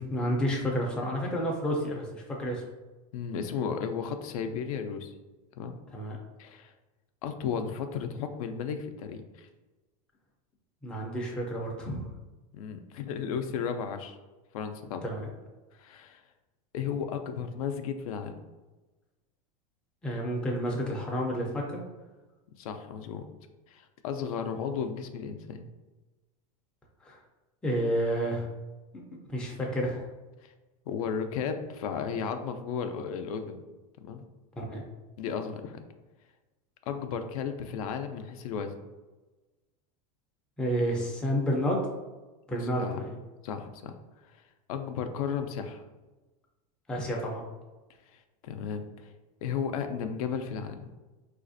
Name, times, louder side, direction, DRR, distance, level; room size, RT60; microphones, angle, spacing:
voice 1, 0.0-2.6 5.9-6.2 10.8-12.1 15.0-15.3 20.0-21.8 27.0-27.2 27.6-28.5 28.9-29.0 29.3-30.0 34.6-34.8 40.6-41.9 42.5-43.2 46.9-47.4, equal, 5° left, -2 dB, 0.4 m, -30 dB
voice 2, 3.1-5.1 5.6-5.7 6.4-6.7 7.2-9.5 12.5-14.2 14.5-15.0 15.7-16.2 16.7-18.4 22.6-23.2 23.7-25.6 30.4-30.5 30.9-33.6 34.0-34.2 35.2-35.8 36.9-38.8 42.8-43.0 43.4-44.0 44.7-45.8 48.1-49.1 49.4-50.8, left 7 dB, 75° left, 7 dB, 0.4 m, -34 dB
4.0 x 2.4 x 2.5 m, 1.2 s
supercardioid pair, 155°, 19 cm